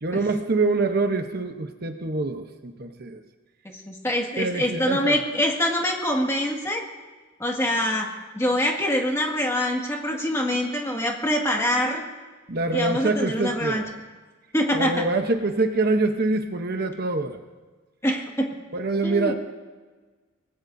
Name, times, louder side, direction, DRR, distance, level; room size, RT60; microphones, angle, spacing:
voice 1, 0.0-3.2 4.4-5.2 12.5-13.9 14.7-17.4 18.7-19.3, right 3 dB, 50° right, 6 dB, 0.9 m, -25 dB
voice 2, 3.6-6.8 7.4-8.1 8.3-12.1 12.7-13.8 14.5-14.9 18.0-18.5 19.0-19.3, left 1 dB, 15° left, 1 dB, 1.9 m, -24 dB
25.0 x 19.5 x 2.7 m, 1.3 s
head